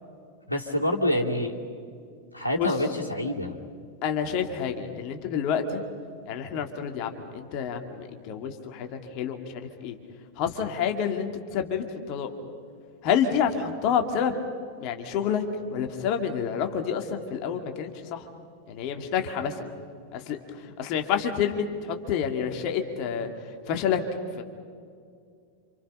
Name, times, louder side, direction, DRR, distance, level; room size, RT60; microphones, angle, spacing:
voice 1, 0.5-1.6 2.3-3.5, left 1 dB, 85° left, -2 dB, 2.6 m, -26 dB
voice 2, 4.0-5.8 6.3-8.9 9.1-10.0 10.4-12.3 13.0-14.3 14.8-15.4 15.7-18.3 18.7-19.7 20.1-23.3 23.7-24.0 24.3-24.4, left 8 dB, 40° left, 5 dB, 2.4 m, -28 dB
29.5 x 27.5 x 5.6 m, 2.3 s
figure-of-eight pair, 90°, 0 cm